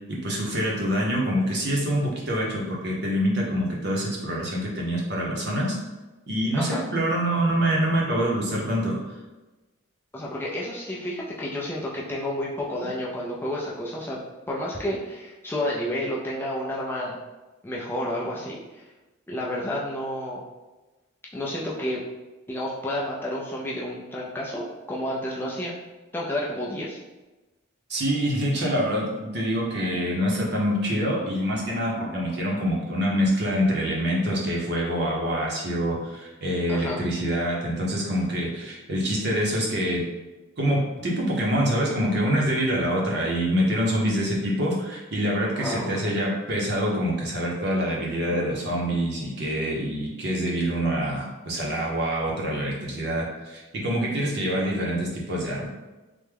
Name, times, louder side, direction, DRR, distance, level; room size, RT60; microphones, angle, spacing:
voice 1, 0.1-5.8 6.3-9.0 27.9-40.0 40.6-55.7, equal, 55° right, -3 dB, 0.7 m, -25 dB
voice 2, 10.1-14.2 14.5-17.2 17.6-18.8 19.3-20.4 21.3-22.0 22.5-25.7 26.1-27.0 36.7-37.0 45.6-46.2, left 1 dB, 10° left, -5 dB, 0.3 m, -30 dB
3.3 x 2.1 x 3.3 m, 1.1 s
head